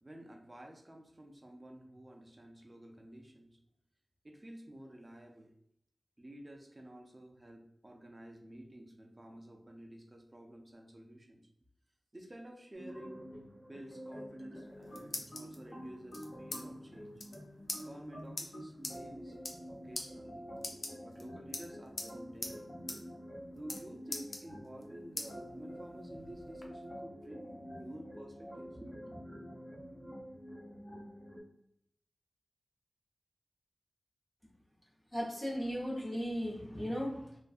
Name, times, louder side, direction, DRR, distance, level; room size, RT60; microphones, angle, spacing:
voice 1, 0.0-3.6 4.2-5.5 6.2-11.4 12.1-13.2 13.6-17.2 17.8-20.5 21.0-22.7 23.6-29.2, right 1 dB, 30° right, 1 dB, 0.5 m, -51 dB
sound 1, 12.7-31.4, equal, 70° left, 1.2 m, -48 dB
sound 2, 14.5-15.6 16.1-16.6 16.9-17.0 17.2-17.4 17.7-17.8 18.4-18.5 18.8-19.0 19.3-19.7 20.0-20.1 20.6-21.2 21.5-22.1 22.4-22.6 22.9-23.0 23.3-23.8 24.1-24.8 25.2-25.3 25.8-26.7, left 2 dB, 85° left, 0.4 m, -41 dB
voice 2, 35.1-37.4, equal, 20° left, -6 dB, 0.7 m, -36 dB
2.5 x 2.2 x 2.4 m, 0.73 s
wide cardioid pair, 70°, 0 cm